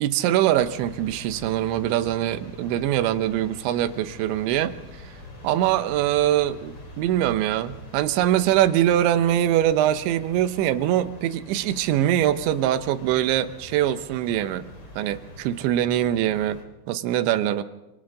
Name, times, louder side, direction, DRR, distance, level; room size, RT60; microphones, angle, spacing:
voice 1, 0.0-4.8 5.4-14.6 15.0-17.6, right 12 dB, 85° right, 11 dB, 3.2 m, -23 dB
sound 1, 0.5-16.6, left 1 dB, 35° left, 3.5 m, -44 dB
27.0 x 27.0 x 3.8 m, 0.98 s
omnidirectional pair, 5.2 m